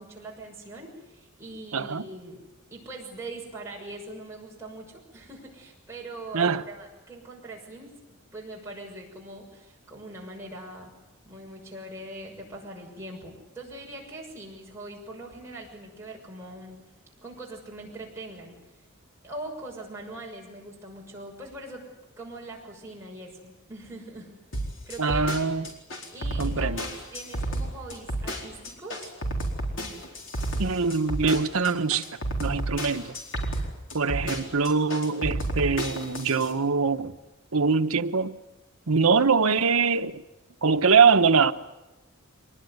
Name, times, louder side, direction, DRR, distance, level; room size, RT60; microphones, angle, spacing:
voice 1, 0.0-2.4 2.7-10.9 11.2-16.8 17.2-18.6 19.2-21.9 22.2-24.3 24.9-25.3 26.1-29.1, right 2 dB, 10° right, 6.6 m, -42 dB
voice 2, 1.7-2.0 6.3-6.6 25.0-25.7 26.4-26.9 30.6-32.0 32.4-33.2 33.9-37.2 37.5-38.4 38.9-40.2 40.6-41.5, right 5 dB, 85° right, 1.1 m, -23 dB
sound 1, 24.5-36.5, right 1 dB, 60° left, 4.2 m, -31 dB
24.5 x 20.0 x 9.6 m
head